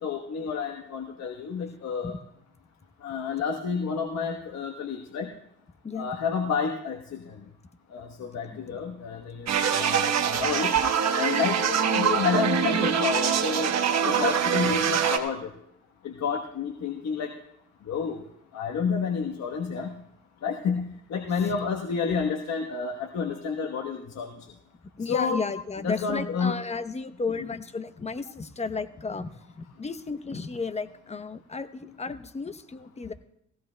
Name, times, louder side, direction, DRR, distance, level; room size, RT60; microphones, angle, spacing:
voice 1, 0.0-2.1 3.0-5.3 5.9-7.4 7.9-9.5 9.7-10.7 11.1-13.7 14.0-15.5 16.0-17.3 17.9-18.2 18.5-19.9 20.4-20.8 21.1-24.3 25.1-25.4 25.8-26.6 27.4-27.5, left 6 dB, 60° left, 2 dB, 1.2 m, -29 dB
sound 1, 9.5-15.2, right 8 dB, 60° right, 1.2 m, -24 dB
voice 2, 25.0-29.3 29.5-33.1, left 4 dB, 20° left, 11 dB, 0.8 m, -33 dB
19.0 x 16.0 x 2.2 m, 0.74 s
cardioid pair, 90°, 30 cm